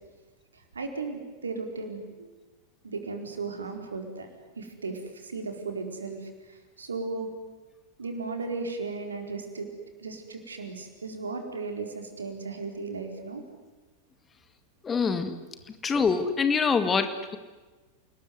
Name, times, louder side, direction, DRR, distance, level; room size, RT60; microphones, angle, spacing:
voice 1, 0.5-2.3 2.8-4.3 4.6-7.3 8.0-9.7 10.0-13.4, right 4 dB, 75° right, 5 dB, 4.5 m, -36 dB
voice 2, 14.8-15.4 15.8-17.4, left 5 dB, 20° left, 9 dB, 2.1 m, -25 dB
29.0 x 20.5 x 9.5 m, 1.3 s
figure-of-eight pair, 90°, 0 cm